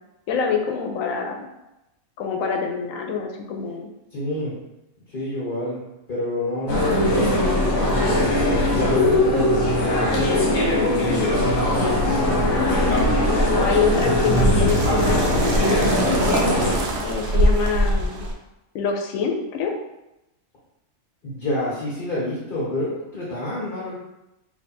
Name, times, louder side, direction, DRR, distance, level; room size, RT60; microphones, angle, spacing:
voice 1, 0.3-1.5 2.2-3.9 11.6-12.8 13.6-18.3 18.7-19.7, left 5 dB, 85° left, 3 dB, 1.0 m, -26 dB
voice 2, 4.1-4.5 5.1-5.8 6.1-7.4 7.7-11.0 21.2-23.9, left 1 dB, 45° left, -7 dB, 1.3 m, -28 dB
sound 1, 6.7-16.7, left 1 dB, 70° left, 1.3 m, -20 dB
sound 2, 12.9-18.3, right 1 dB, 60° right, 0.7 m, -24 dB
3.4 x 2.6 x 4.2 m, 0.95 s
omnidirectional pair, 1.4 m